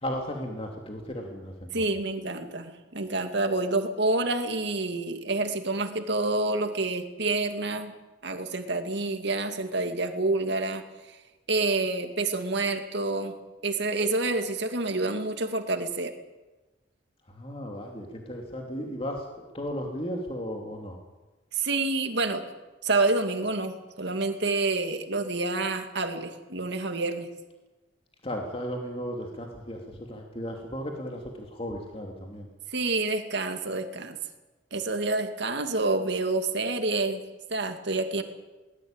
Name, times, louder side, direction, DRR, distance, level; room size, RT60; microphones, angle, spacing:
voice 1, 0.0-1.8 17.3-21.0 28.2-32.5, equal, 30° left, 1 dB, 2.7 m, -35 dB
voice 2, 1.7-7.9 8.2-10.8 11.1-11.2 11.5-13.4 13.6-16.1 21.5-22.4 22.8-27.3 32.7-34.2 34.7-37.2 37.5-38.2, right 2 dB, 60° right, 6 dB, 2.4 m, -28 dB
22.5 x 19.5 x 9.0 m, 1.1 s
head